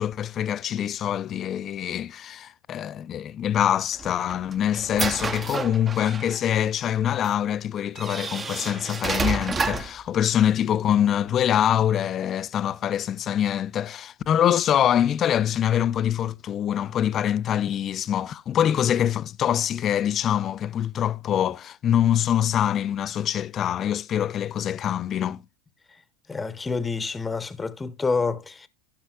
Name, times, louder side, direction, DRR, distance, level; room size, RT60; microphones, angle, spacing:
voice 1, 0.0-25.4, left 10 dB, 40° left, 0.4 m, -24 dB
sound 1, 3.9-6.4 7.2-7.3 8.0-10.0, right 4 dB, 25° right, 0.7 m, -29 dB
voice 2, 26.3-28.7, left 4 dB, 15° left, 0.8 m, -28 dB
15.0 x 5.7 x 2.3 m
hypercardioid pair, 100°, 0 cm